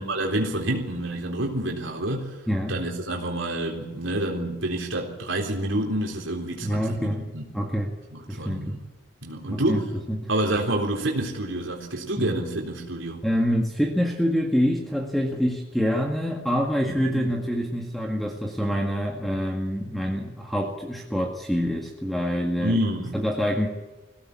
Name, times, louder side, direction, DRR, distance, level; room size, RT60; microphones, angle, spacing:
voice 1, 0.0-2.4 2.7-7.5 8.3-8.9 9.2-9.8 10.3-13.3 17.1-17.3 22.6-23.2, right 1 dB, 85° right, 3.8 m, -28 dB
voice 2, 6.6-7.2 7.5-7.9 8.3-8.8 9.5-9.8 10.1-10.3 12.2-12.3 13.2-22.8 23.1-23.7, equal, ahead, 1.9 m, -26 dB
22.0 x 17.0 x 8.5 m
head